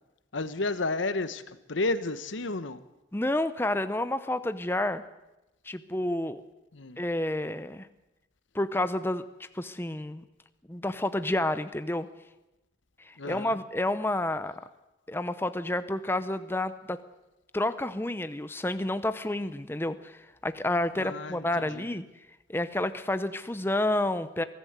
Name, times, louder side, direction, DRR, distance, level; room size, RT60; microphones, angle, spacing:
voice 1, 0.3-2.8 6.7-7.0 13.2-13.6 21.0-22.0, left 2 dB, 85° left, 13 dB, 1.1 m, -32 dB
voice 2, 3.1-5.0 5.7-6.4 7.0-7.9 8.5-10.2 10.7-12.1 13.0-14.6 15.1-17.0 17.5-22.1 22.5-24.4, left 1 dB, 10° left, 12 dB, 0.7 m, -30 dB
23.0 x 15.0 x 8.1 m, 0.97 s
head